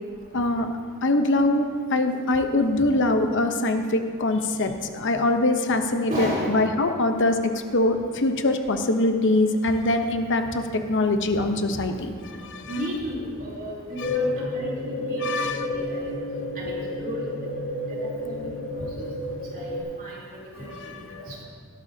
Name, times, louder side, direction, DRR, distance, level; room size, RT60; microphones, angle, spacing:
voice 1, 0.3-0.7 1.0-12.8 14.0-14.2 15.2-15.7 20.7-21.2, left 2 dB, 60° left, 6 dB, 0.9 m, -23 dB
voice 2, 6.1-6.6 12.7-15.3 15.7-16.1 16.6-17.3 17.9-19.1 19.5-20.2 20.6-21.4, equal, 40° right, -6 dB, 3.5 m, -34 dB
sound 1, 14.0-19.8, left 1 dB, 85° left, 2.4 m, -30 dB
17.5 x 11.5 x 2.8 m, 2.1 s
head